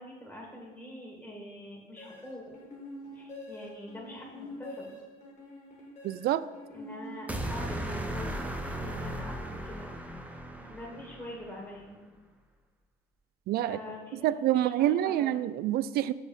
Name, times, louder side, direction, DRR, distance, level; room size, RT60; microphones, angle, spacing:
voice 1, 0.0-2.4 3.1-4.9 6.7-9.9 10.3-12.0 13.6-15.3, left 1 dB, 10° left, -2 dB, 1.8 m, -44 dB
sound 1, 2.0-7.8, left 1 dB, 45° left, 2.1 m, -46 dB
voice 2, 6.0-6.5 13.5-13.8 14.2-16.1, right 12 dB, 65° right, 16 dB, 0.4 m, -27 dB
sound 2, 7.3-11.6, right 1 dB, 10° right, 0.8 m, -36 dB
6.3 x 5.6 x 5.5 m, 1.2 s
cardioid pair, 110°, 17 cm